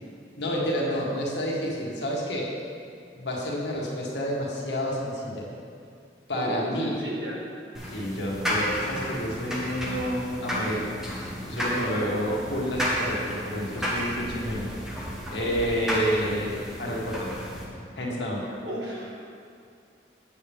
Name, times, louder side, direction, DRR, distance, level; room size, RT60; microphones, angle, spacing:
voice 1, 0.4-2.5 3.1-5.5 6.3-6.9 7.9-10.8 11.4-14.7 15.3-17.3 18.0-18.4, equal, 90° left, -4 dB, 1.8 m, -29 dB
voice 2, 6.4-7.4 15.4-16.0 18.5-19.1, equal, 80° right, -4 dB, 1.8 m, -35 dB
sound 1, 7.7-17.6, equal, 5° right, 1.2 m, -32 dB
8.7 x 8.3 x 3.6 m, 2.3 s
head